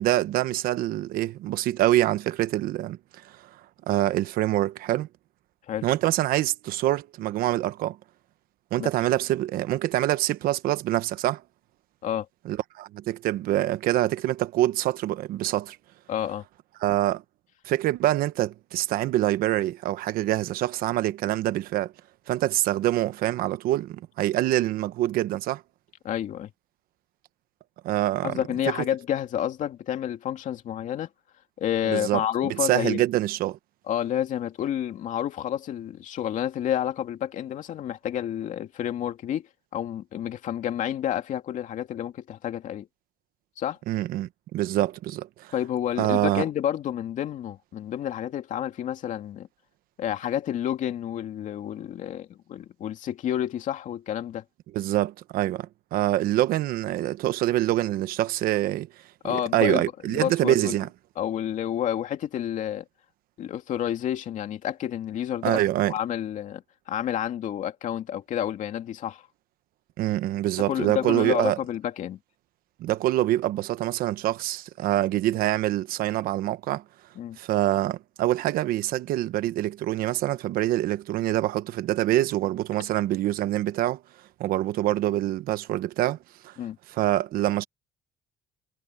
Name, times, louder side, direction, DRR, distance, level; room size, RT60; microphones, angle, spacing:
voice 1, 0.0-3.0 3.4-3.5 3.9-5.1 5.8-8.0 8.7-11.4 12.4-15.8 16.8-17.2 17.6-21.9 22.3-25.6 27.8-28.4 31.9-32.2 32.6-33.6 43.9-45.5 46.0-46.4 54.7-58.9 59.3-60.9 65.4-65.9 70.0-71.6 72.8-76.8 77.4-84.0 84.4-86.2 86.4-86.5 86.9-87.6, right 14 dB, 70° right, 1.1 m, -25 dB
voice 2, 16.1-16.4 26.0-26.5 28.2-31.1 31.6-33.0 33.9-42.9 43.6-43.8 45.5-49.5 50.0-54.4 59.2-60.7 61.2-62.8 63.4-65.6 65.9-69.2 70.7-72.2 77.2-77.4 86.6-86.8, left 10 dB, 55° left, 2.4 m, -30 dB
cardioid pair, 120°, 16 cm